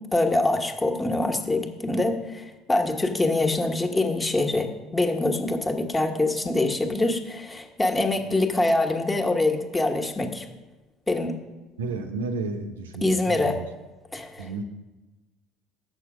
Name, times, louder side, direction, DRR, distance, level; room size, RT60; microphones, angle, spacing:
voice 1, 0.1-10.5 11.1-11.4 13.0-13.6 14.1-14.6, left 2 dB, 20° left, 4 dB, 1.3 m, -24 dB
voice 2, 11.8-13.6 14.4-14.6, right 3 dB, 90° right, 6 dB, 0.8 m, -32 dB
7.8 x 6.7 x 6.1 m, 1.2 s
hypercardioid pair, 65°, 0 cm